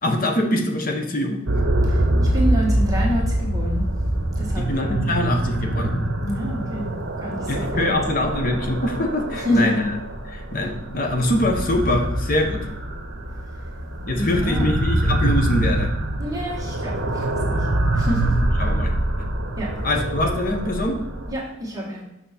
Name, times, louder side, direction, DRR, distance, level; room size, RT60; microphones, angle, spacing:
voice 1, 0.0-1.4 4.6-6.0 7.5-9.9 10.2-12.7 14.1-15.9 18.6-18.9 19.8-21.0, left 1 dB, 45° left, 3 dB, 1.0 m, -23 dB
sound 1, 1.5-21.3, right 1 dB, 65° right, 0.9 m, -24 dB
voice 2, 1.9-3.9 4.4-5.0 6.2-8.0 9.4-9.7 13.5-13.6 14.1-14.7 16.2-17.7 17.9-18.4 19.6-19.7 21.3-22.0, equal, 20° right, -4 dB, 1.5 m, -28 dB
6.3 x 5.8 x 4.2 m, 0.90 s
head